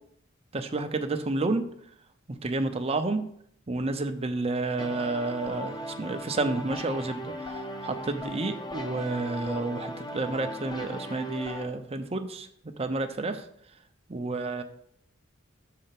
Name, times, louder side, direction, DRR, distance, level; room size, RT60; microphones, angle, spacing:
voice 1, 0.5-1.6 2.3-3.2 3.7-12.5 12.8-13.4 14.1-14.6, right 2 dB, 30° right, 6 dB, 0.7 m, -30 dB
Motivational Time Lapse Music, 4.8-11.7, left 1 dB, 20° left, 0.8 m, -38 dB
6.7 x 4.2 x 5.8 m, 0.67 s
head